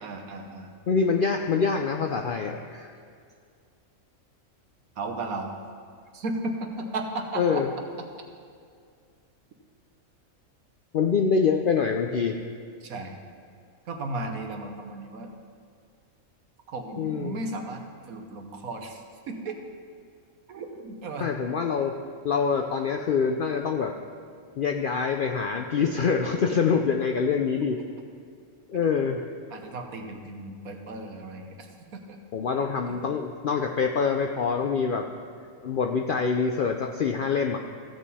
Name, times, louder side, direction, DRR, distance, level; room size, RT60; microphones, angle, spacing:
voice 1, 0.0-0.7 5.0-5.5 6.1-7.6 12.8-13.2 13.9-15.3 16.7-19.6 20.5-21.3 27.6-27.7 28.7-29.0 29.5-32.2 32.9-33.0, right 2 dB, 75° right, 3 dB, 1.4 m, -35 dB
voice 2, 0.9-2.9 7.4-7.7 10.9-12.4 17.0-17.4 21.2-22.0 22.2-23.9 24.6-27.8 28.7-29.3 32.3-35.1 35.6-37.6, left 5 dB, 85° left, 3 dB, 0.4 m, -25 dB
15.0 x 7.4 x 4.2 m, 2.2 s
omnidirectional pair, 1.5 m